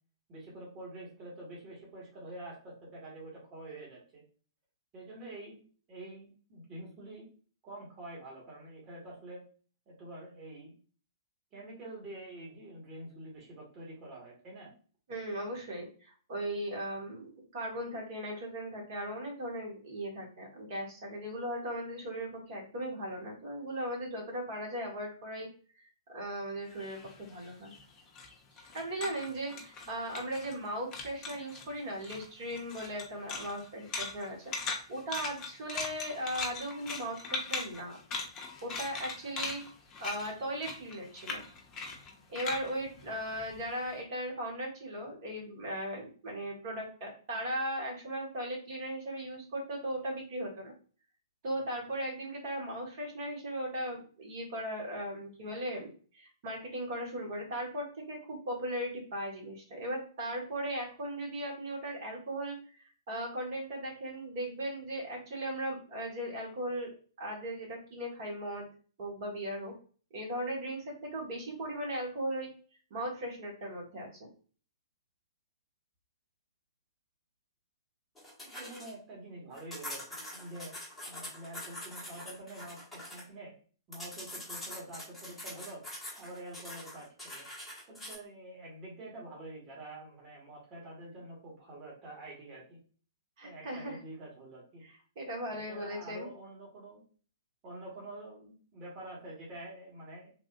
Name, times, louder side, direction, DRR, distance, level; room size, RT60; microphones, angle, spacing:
voice 1, 0.3-4.2 4.9-5.6 5.9-7.2 7.6-9.4 9.9-10.7 11.5-14.7 78.6-80.7 81.1-83.5 83.9-85.8 86.2-87.5 87.9-92.8 93.4-94.8 95.5-97.0 97.6-100.3, right 1 dB, 30° right, -5 dB, 1.5 m, -47 dB
voice 2, 15.1-17.3 17.5-25.5 25.8-27.7 28.6-34.4 34.7-38.0 38.6-39.6 40.0-41.4 42.3-50.7 51.4-66.9 67.2-68.7 69.0-69.7 70.1-72.5 72.9-74.1 93.4-94.0 95.1-96.3, right 1 dB, 45° right, -1 dB, 1.3 m, -38 dB
sound 1, 26.7-30.7 30.9-31.7 32.0-43.8, left 3 dB, 25° left, 0.6 m, -40 dB
sound 2, 78.2-78.9 79.5-83.2 83.9-88.1, left 1 dB, 5° left, 1.2 m, -44 dB
3.4 x 2.4 x 2.4 m, 0.41 s
figure-of-eight pair, 115°, 2 cm